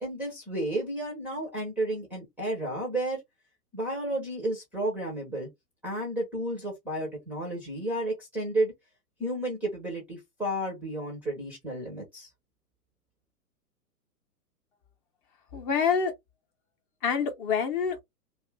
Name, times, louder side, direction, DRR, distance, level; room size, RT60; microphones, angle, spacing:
voice 1, 0.0-3.2 3.7-5.5 5.8-8.7 9.2-12.3, right 1 dB, 5° right, 0.5 m, -32 dB
voice 2, 15.5-16.1 17.0-18.0, left 6 dB, 35° left, 0.7 m, -26 dB
2.6 x 2.4 x 3.3 m
hypercardioid pair, 125°, 48 cm